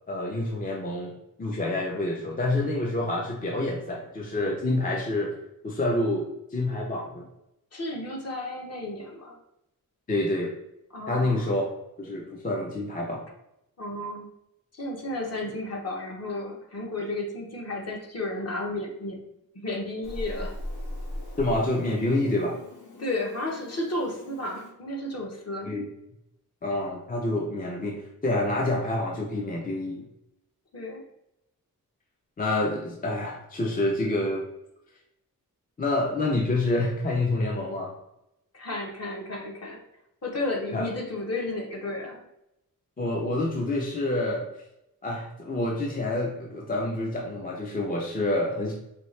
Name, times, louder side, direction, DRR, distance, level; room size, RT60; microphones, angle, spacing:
voice 1, 0.1-1.1 1.4-5.3 5.6-7.3 10.1-10.5 11.1-11.6 12.0-13.2 21.4-22.6 25.6-25.9 26.6-30.0 32.4-34.4 35.8-37.9 40.7-40.9 43.0-44.5 45.0-48.7, left 2 dB, 25° left, -1 dB, 0.4 m, -27 dB
voice 2, 7.7-9.4 10.9-11.6 13.8-14.3 14.7-19.2 19.5-20.5 23.0-25.7 30.7-31.0 38.5-39.8 40.2-42.2, left 2 dB, 45° left, 0 dB, 0.8 m, -33 dB
Meow, 20.0-24.7, left 1 dB, 85° left, 1.3 m, -39 dB
4.3 x 2.7 x 3.1 m, 0.85 s
wide cardioid pair, 170°, 36 cm